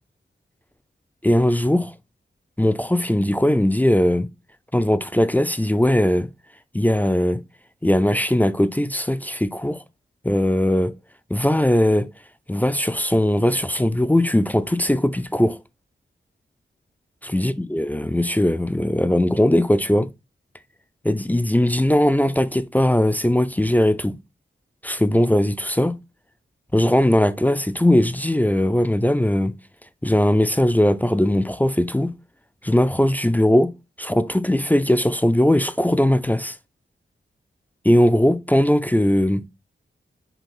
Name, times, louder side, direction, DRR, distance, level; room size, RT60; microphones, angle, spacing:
voice 1, 1.2-1.9 2.6-4.3 4.7-6.3 6.7-7.4 7.8-9.8 10.2-10.9 11.3-12.1 12.5-15.6 17.2-20.1 21.0-24.2 24.8-26.0 26.7-29.5 30.0-32.1 32.6-33.7 34.0-36.5 37.8-39.4, left 1 dB, 10° left, 0.3 m, -19 dB
5.5 x 2.3 x 3.7 m
cardioid pair, 65°, 20 cm